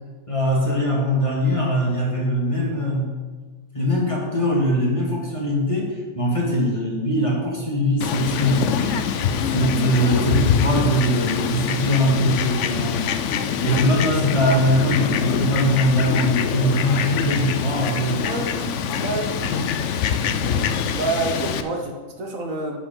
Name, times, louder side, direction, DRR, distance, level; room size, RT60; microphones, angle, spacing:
voice 1, 0.3-3.1 3.7-9.1 9.5-13.0 13.6-18.4, equal, 20° left, -3 dB, 1.9 m, -21 dB
Fowl, 8.0-21.6, left 7 dB, 65° left, 0.8 m, -24 dB
voice 2, 18.2-19.6 20.9-22.8, right 3 dB, 65° right, 2 dB, 1.4 m, -28 dB
11.5 x 5.2 x 5.3 m, 1.3 s
omnidirectional pair, 1.5 m